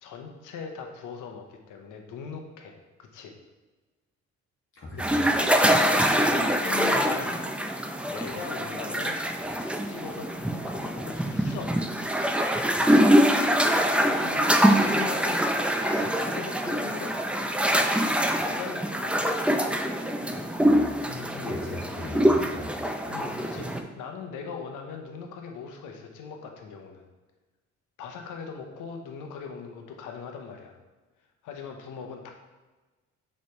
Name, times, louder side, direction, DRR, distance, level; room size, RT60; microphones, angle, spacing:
voice 1, 0.0-3.4 4.9-5.4 5.7-9.2 9.5-11.8 14.0-17.2 18.4-19.3 20.2-20.5 23.1-27.0 28.0-30.8 31.4-32.3, left 6 dB, 90° left, 4 dB, 0.9 m, -40 dB
voice 2, 4.7-5.2 20.6-22.7, left 2 dB, 45° left, -4 dB, 1.3 m, -38 dB
sound 1, 5.0-23.8, equal, 5° right, 0.5 m, -24 dB
6.6 x 3.3 x 4.5 m, 1.2 s
cardioid pair, 90°, 30 cm